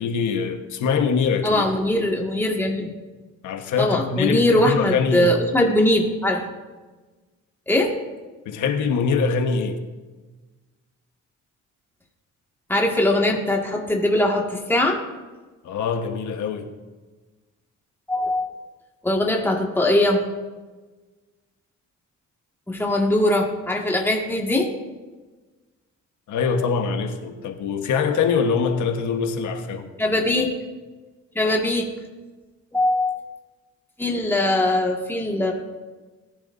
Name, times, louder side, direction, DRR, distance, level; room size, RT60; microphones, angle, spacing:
voice 1, 0.0-1.7 3.4-5.4 8.4-9.8 15.6-16.7 26.3-29.9, left 5 dB, 75° left, 1.3 m, -23 dB
voice 2, 1.4-2.9 3.8-6.5 7.7-7.9 12.7-15.0 18.1-18.5 19.0-20.2 22.7-24.7 30.0-30.6 31.4-31.9 32.7-33.2 34.0-35.5, left 1 dB, 5° left, 2.0 m, -21 dB
19.0 x 10.5 x 2.7 m
cardioid pair, 90°, 30 cm